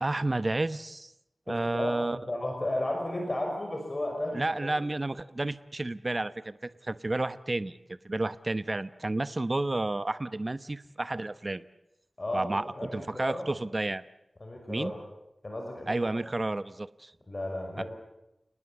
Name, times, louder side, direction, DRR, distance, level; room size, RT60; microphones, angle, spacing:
voice 1, 0.0-1.1 1.5-2.2 4.3-11.6 12.3-14.0 14.7-14.9 15.9-17.1 17.8-17.9, right 2 dB, 40° right, 13 dB, 0.9 m, -31 dB
voice 2, 1.5-4.7 12.2-13.5 14.4-15.0 15.4-16.0 17.3-17.8, left 1 dB, 40° left, 1 dB, 6.1 m, -34 dB
30.0 x 19.5 x 8.6 m, 0.87 s
wide cardioid pair, 75°, 0 cm